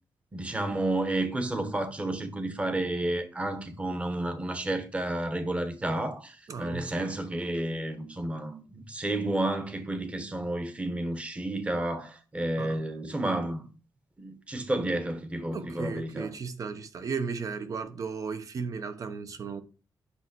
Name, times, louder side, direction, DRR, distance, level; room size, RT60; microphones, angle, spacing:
voice 1, 0.3-13.7 14.2-16.3, right 1 dB, 15° right, 1.1 m, -31 dB
voice 2, 6.5-7.1 12.6-12.8 15.5-19.6, right 5 dB, 45° right, 0.9 m, -35 dB
8.4 x 3.3 x 6.0 m
wide cardioid pair, 165°, 8 cm